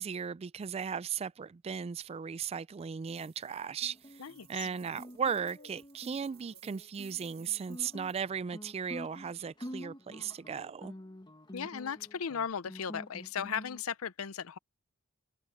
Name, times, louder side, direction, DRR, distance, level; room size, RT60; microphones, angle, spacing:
voice 1, 0.0-4.2 4.5-11.0, right 7 dB, 30° right, 0.3 m, -36 dB
sound 1, 3.1-8.2, right 13 dB, 50° right, 2.2 m, -59 dB
Guitar, 3.8-13.8, equal, 20° left, 1.4 m, -48 dB
voice 2, 4.2-4.7 11.5-14.6, left 7 dB, 80° left, 0.6 m, -36 dB
head